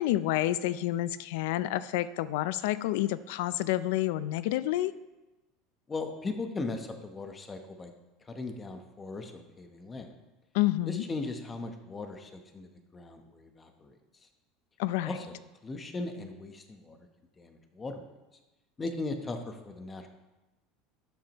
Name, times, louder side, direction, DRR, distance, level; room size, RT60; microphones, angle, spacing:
voice 1, 0.0-4.9 10.5-11.0 14.8-15.2, left 15 dB, 75° left, 16 dB, 0.4 m, -29 dB
voice 2, 5.9-7.9 8.3-10.1 10.9-14.0 15.0-17.0 17.4-18.1 18.8-20.1, left 3 dB, 15° left, 5 dB, 0.9 m, -38 dB
12.5 x 8.8 x 3.0 m, 1.1 s
supercardioid pair, 155°, 0 cm